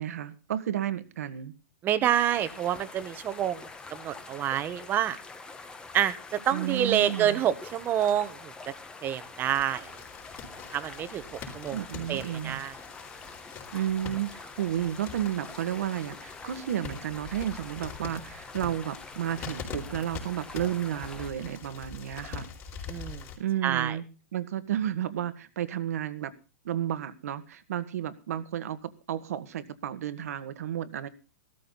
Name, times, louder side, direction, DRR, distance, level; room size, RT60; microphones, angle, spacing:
voice 1, 0.0-1.5 6.5-7.4 11.7-12.6 13.7-22.5 23.4-24.1 24.3-26.3 26.6-31.1, right 11 dB, 70° right, 13 dB, 1.7 m, -32 dB
voice 2, 1.8-5.2 5.9-8.5 9.0-10.0 10.7-11.8 12.1-12.7 22.9-23.2 23.6-24.0, right 10 dB, 25° right, 13 dB, 1.2 m, -28 dB
sound 1, 2.0-21.3, left 3 dB, 10° left, 1.4 m, -46 dB
sound 2, 9.4-23.4, left 6 dB, 30° left, 4.3 m, -44 dB
16.0 x 13.5 x 4.1 m, 0.32 s
hypercardioid pair, 150°, 8 cm